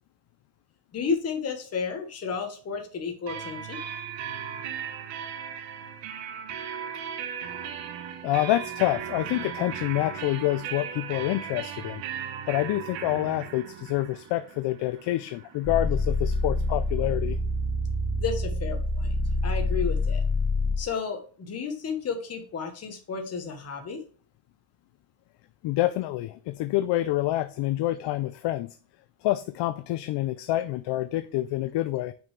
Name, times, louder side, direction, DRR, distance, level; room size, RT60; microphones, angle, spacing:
voice 1, 0.9-3.8 18.2-19.1 19.4-20.2 20.8-24.0, left 5 dB, 35° left, 1.3 m, -32 dB
sound 1, 3.3-16.8, right 8 dB, 80° right, 1.2 m, -37 dB
voice 2, 8.2-12.0 12.5-17.4 25.6-28.8 29.2-32.1, left 15 dB, 65° left, 0.5 m, -27 dB
sound 2, 15.6-20.9, left 2 dB, 5° left, 0.6 m, -26 dB
6.1 x 5.4 x 3.3 m
cardioid pair, 140°, 45 cm